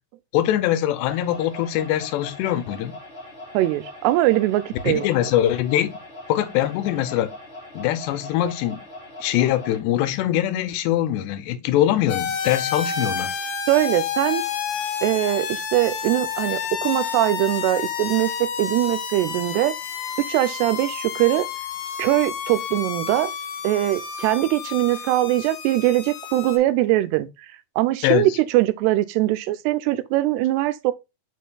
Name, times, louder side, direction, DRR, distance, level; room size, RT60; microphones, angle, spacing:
voice 1, 0.3-2.9 4.9-6.0 6.3-7.3 7.7-8.8 9.2-13.3 28.0-28.3, left 12 dB, 90° left, 2.9 m, -22 dB
sound 1, 1.1-9.8, left 1 dB, 15° left, 3.0 m, -41 dB
voice 2, 3.5-5.1 13.7-14.4 15.0-19.8 20.2-21.5 22.0-23.3 23.6-27.3 27.8-30.9, right 16 dB, 85° right, 2.7 m, -21 dB
sound 2, 12.1-26.6, left 7 dB, 70° left, 2.0 m, -30 dB
6.4 x 6.4 x 2.3 m
omnidirectional pair, 4.7 m